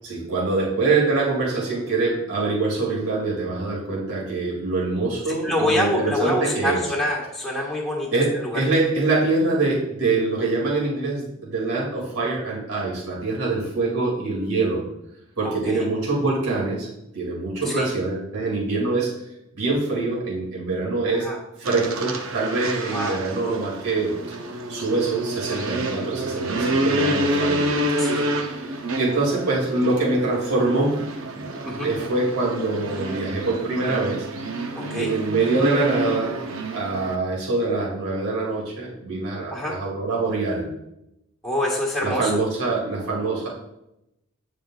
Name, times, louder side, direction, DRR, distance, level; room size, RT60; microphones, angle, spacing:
voice 1, 0.0-6.8 8.1-14.8 15.4-16.9 17.1-19.1 19.5-21.3 21.6-24.1 24.7-27.8 28.7-30.9 31.3-34.2 34.9-36.4 36.7-40.7 42.0-43.5, right 3 dB, 85° right, -5 dB, 2.4 m, -24 dB
voice 2, 5.3-8.1 8.4-8.7 12.2-12.3 15.4-15.8 17.6-17.9 21.1-21.4 22.9-23.2 28.0-28.3 31.6-31.9 34.7-35.1 39.5-39.8 41.4-42.4, left 1 dB, ahead, -5 dB, 1.5 m, -26 dB
sound 1, 21.6-37.2, right 1 dB, 65° right, 0.7 m, -28 dB
9.5 x 5.0 x 2.4 m, 0.85 s
head